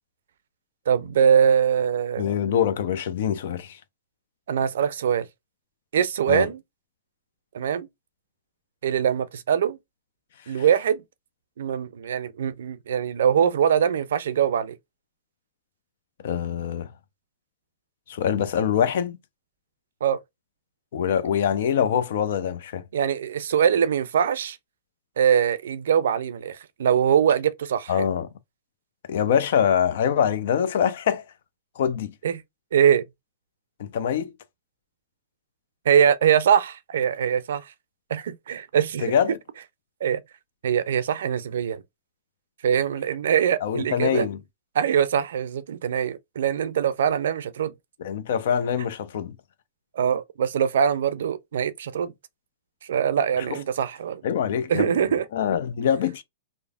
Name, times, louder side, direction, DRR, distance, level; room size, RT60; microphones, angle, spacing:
voice 1, 0.9-2.3 4.5-5.3 5.9-6.6 7.5-7.9 8.8-9.8 10.5-11.0 11.6-14.8 20.0-20.2 22.9-24.6 25.2-28.1 32.2-32.4 32.7-33.0 35.9-37.7 38.1-39.1 40.0-40.2 40.6-41.8 42.6-44.3 44.7-47.7 49.9-52.1 52.8-54.2 54.7-55.2, right 8 dB, 75° right, 0.4 m, -22 dB
voice 2, 2.2-3.8 6.3-6.5 16.2-16.9 18.1-19.2 20.9-22.8 27.9-28.3 29.1-31.3 31.8-32.1 33.8-34.3 39.0-39.4 43.6-44.4 48.0-49.3 53.5-53.6 54.2-54.9 55.3-56.2, left 8 dB, 65° left, 0.5 m, -24 dB
3.3 x 2.0 x 2.3 m
hypercardioid pair, 130°, 0 cm